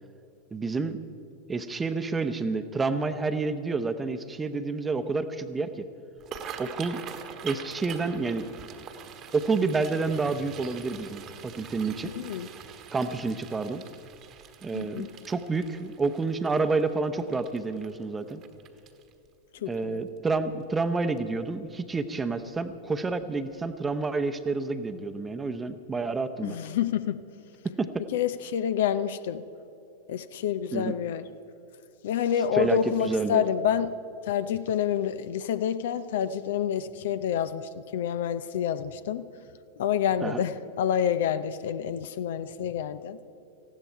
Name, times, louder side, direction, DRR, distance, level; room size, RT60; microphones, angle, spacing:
voice 1, 0.5-1.0 1.5-5.8 6.6-7.0 7.4-8.5 9.3-12.1 12.9-13.8 14.6-18.4 19.7-26.6 27.6-28.0 30.7-30.9 32.5-33.4 40.2-40.4, right 3 dB, 15° right, 10 dB, 0.9 m, -29 dB
sound 1, 6.1-19.3 19.7-20.0 20.3-20.8 21.2-21.3 22.6-22.7 23.1-23.2 23.7-23.8, right 8 dB, 35° right, 1.3 m, -44 dB
voice 2, 12.0-12.5 14.7-15.1 19.6-20.0 26.4-27.2 28.1-29.4 30.1-31.2 32.0-33.9 34.2-39.2 39.8-43.2, left 9 dB, 55° left, 14 dB, 0.6 m, -28 dB
19.0 x 15.0 x 4.6 m, 2.8 s
figure-of-eight pair, 90°, 0 cm